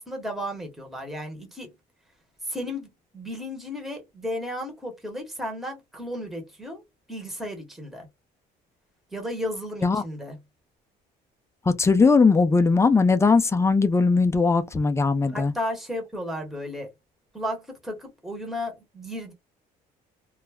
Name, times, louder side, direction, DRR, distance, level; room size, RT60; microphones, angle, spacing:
voice 1, 0.0-1.7 2.5-6.8 7.1-8.1 9.1-10.4 15.3-16.9 17.3-19.3, left 1 dB, ahead, 1.0 m, -34 dB
voice 2, 11.8-15.5, left 4 dB, 15° left, 0.4 m, -19 dB
2.3 x 2.0 x 3.3 m
cardioid pair, 110°, 17 cm